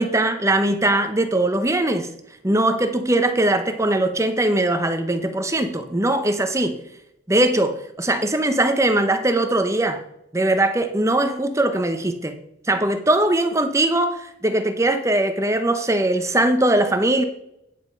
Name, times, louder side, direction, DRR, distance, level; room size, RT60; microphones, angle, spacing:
voice 1, 0.0-2.1 2.4-6.8 7.3-10.0 10.3-12.3 12.7-17.2, right 1 dB, 15° right, 7 dB, 0.9 m, -20 dB
9.7 x 5.9 x 5.3 m, 0.78 s
head